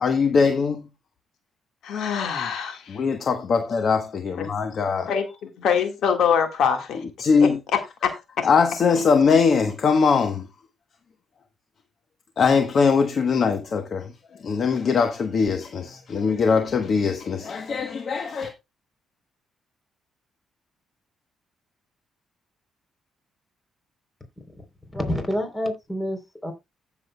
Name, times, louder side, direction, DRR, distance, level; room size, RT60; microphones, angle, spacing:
voice 1, 0.0-0.9 2.9-5.1 7.2-7.6 8.4-10.4 12.4-14.1 14.4-18.5, left 5 dB, 50° left, 1.1 m, -21 dB
voice 2, 1.8-3.0 4.4-4.5 5.1-7.0 7.4-8.5, left 7 dB, 75° left, 1.7 m, -24 dB
voice 3, 24.9-26.5, equal, 15° left, 3.6 m, -28 dB
15.0 x 7.1 x 2.3 m
cardioid pair, 90°, 0 cm